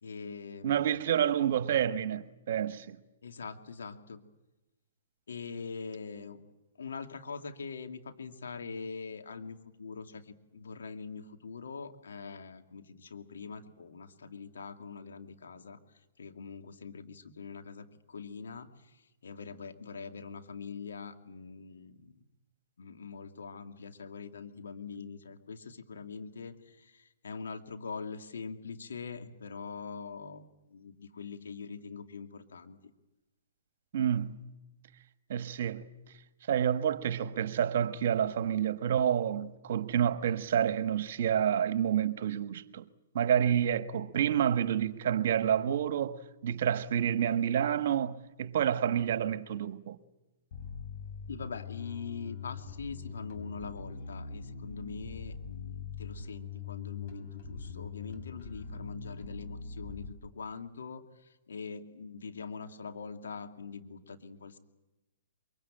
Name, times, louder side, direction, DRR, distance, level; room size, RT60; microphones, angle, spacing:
voice 1, 0.0-0.9 3.2-4.2 5.3-6.4 6.8-15.8 16.2-22.2 22.8-32.8 51.3-64.6, left 5 dB, 80° left, 2.4 m, -43 dB
voice 2, 0.6-3.0 33.9-34.4 35.3-35.9 36.5-42.8 43.1-50.0, right 9 dB, 60° right, 1.5 m, -29 dB
Bass guitar, 50.5-60.1, left 5 dB, 50° left, 5.6 m, -42 dB
23.5 x 23.0 x 8.9 m
hypercardioid pair, 135°, 0 cm